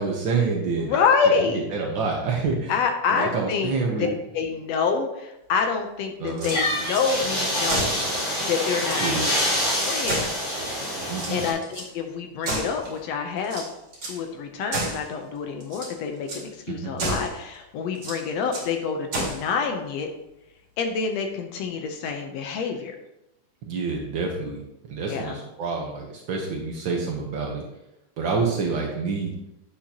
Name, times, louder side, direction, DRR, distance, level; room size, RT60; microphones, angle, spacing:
voice 1, 0.0-1.0 1.4-1.5 1.7-2.8 3.1-4.1 6.2-6.5 9.0-9.2 11.1-11.4 16.7-16.9 23.6-24.6 24.9-27.6 28.2-29.3, right 4 dB, 90° right, -1 dB, 1.0 m, -27 dB
voice 2, 0.8-1.6 2.7-3.7 4.0-7.9 8.5-9.3 9.6-10.3 11.3-13.7 14.0-20.1 20.8-23.0 25.1-25.4, left 5 dB, 80° left, 4 dB, 1.5 m, -27 dB
sound 1, 6.3-7.1 7.7-8.1 8.5-8.6 8.7-9.6 10.1-10.8 11.1-11.9 12.4-13.0 13.4-14.2 14.7-15.1 15.6-16.0 16.3-16.5 17.0-17.4 18.0-18.7 19.1-19.5, right 2 dB, 45° right, 2.9 m, -31 dB
sound 2, 6.4-11.5, equal, 40° left, 4.0 m, -26 dB
8.5 x 7.6 x 2.9 m, 0.87 s
omnidirectional pair, 3.7 m